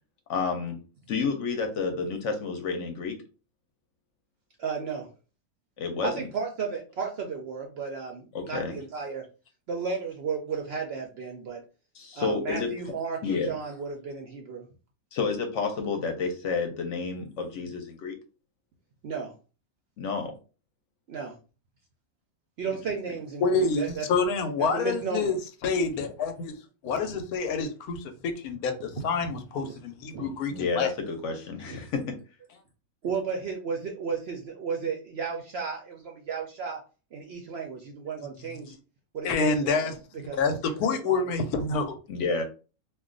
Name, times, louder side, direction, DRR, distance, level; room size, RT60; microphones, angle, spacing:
voice 1, 0.3-0.8 1.1-3.2 5.8-6.2 8.3-8.7 11.9-12.7 13.2-13.5 15.1-18.2 20.0-20.3 30.5-32.2 42.1-42.4, left 4 dB, 65° left, 0.9 m, -30 dB
voice 2, 4.6-5.1 6.0-9.2 9.7-11.6 12.1-14.7 19.0-19.3 21.1-21.3 22.6-24.1 24.7-25.4 26.0-26.1 29.6-29.8 30.1-30.3 31.7-31.8 33.0-36.8 37.1-38.7 39.1-39.9 40.3-41.3, right 5 dB, 65° right, 0.6 m, -34 dB
voice 3, 23.4-25.4 25.6-26.6 26.8-30.9 38.7-38.8 39.2-40.0 40.3-41.9, left 4 dB, 85° left, 1.1 m, -27 dB
2.4 x 2.3 x 3.7 m
omnidirectional pair, 1.5 m